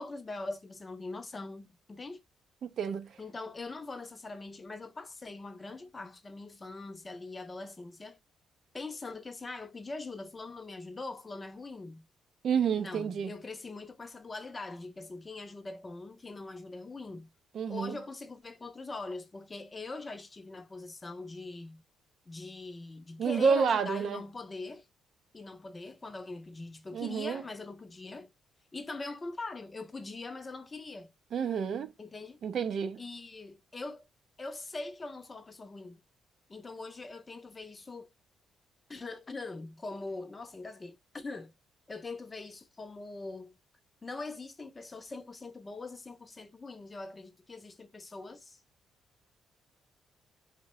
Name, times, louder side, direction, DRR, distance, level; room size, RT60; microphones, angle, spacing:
voice 1, 0.0-2.2 3.2-8.2 8.7-12.0 12.8-17.3 17.7-21.8 22.3-24.9 25.3-28.3 28.7-31.1 32.0-32.4 33.0-34.1 34.4-36.0 36.5-38.1 38.9-41.5 41.9-43.6 44.0-48.6, left 3 dB, 25° left, 0.4 m, -42 dB
voice 2, 2.6-3.1 12.4-13.3 17.5-18.0 23.2-24.2 26.9-27.4 31.3-31.9 32.4-33.0, right 6 dB, 60° right, 0.4 m, -29 dB
2.6 x 2.0 x 2.9 m
cardioid pair, 90°, 0 cm